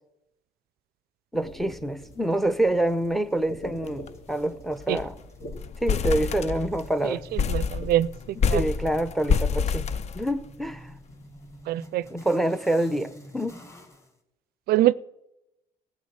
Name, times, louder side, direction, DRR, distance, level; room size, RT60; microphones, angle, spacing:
sound 1, 1.3-8.1, left 1 dB, 65° left, 2.6 m, -45 dB
voice 1, 1.3-5.2 5.8-7.2 8.5-10.9 12.1-13.6, right 1 dB, ahead, 14 dB, 0.7 m, -26 dB
sound 2, 2.0-14.1, left 1 dB, 15° left, 2.0 m, -50 dB
sound 3, 3.9-4.1 4.4-4.5 4.8-5.2 5.5-6.9 7.4-10.7, left 6 dB, 40° left, 0.5 m, -27 dB
voice 2, 7.3-8.6 11.7-12.1 14.7-14.9, right 14 dB, 65° right, 20 dB, 0.4 m, -24 dB
15.5 x 5.9 x 7.9 m, 0.89 s
cardioid pair, 110°, 17 cm